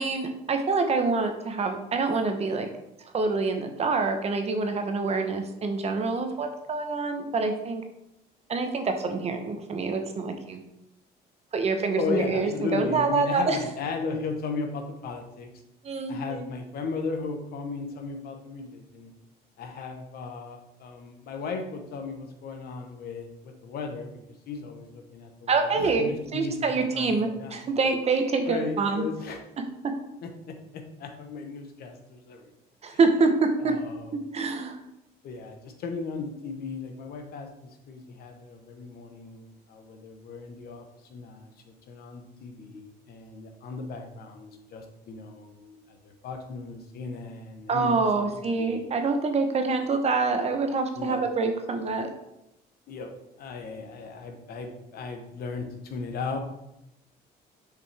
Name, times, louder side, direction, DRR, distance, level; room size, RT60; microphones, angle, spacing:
voice 1, 0.0-2.7 3.1-7.8 8.5-10.6 11.5-13.6 15.8-16.4 25.5-29.0 32.8-33.7 34.3-34.8 47.7-52.1, right 4 dB, 40° right, 5 dB, 0.9 m, -26 dB
voice 2, 12.0-15.5 16.1-19.1 19.6-24.2 24.5-27.6 28.5-29.4 30.2-32.5 32.9-33.0 33.6-34.1 35.2-40.8 41.1-48.9 50.9-51.2 52.0-52.1 52.9-53.1 53.4-56.4, left 4 dB, 65° left, 5 dB, 1.1 m, -36 dB
6.4 x 5.0 x 3.5 m, 0.85 s
cardioid pair, 110°, 17 cm